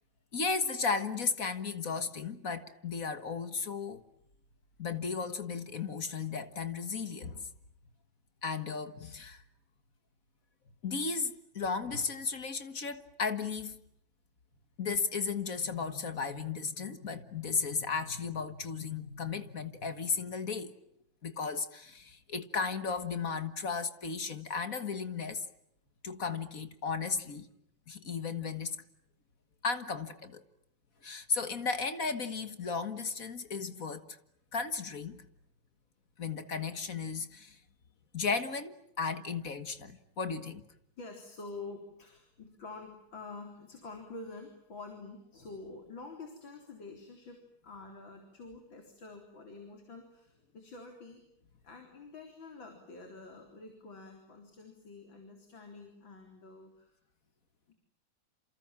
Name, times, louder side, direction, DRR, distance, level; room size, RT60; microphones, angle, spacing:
voice 1, 0.3-4.0 4.8-7.5 8.4-9.4 10.8-13.8 14.8-20.7 21.2-25.4 26.0-27.5 27.9-28.8 29.6-30.4 31.0-34.0 34.5-35.2 36.2-37.6 38.1-40.6, left 5 dB, 45° left, 1.9 m, -35 dB
voice 2, 41.0-51.2 51.6-57.0 57.7-57.8, left 3 dB, 70° left, 4.6 m, -48 dB
28.5 x 28.0 x 7.4 m
omnidirectional pair, 2.2 m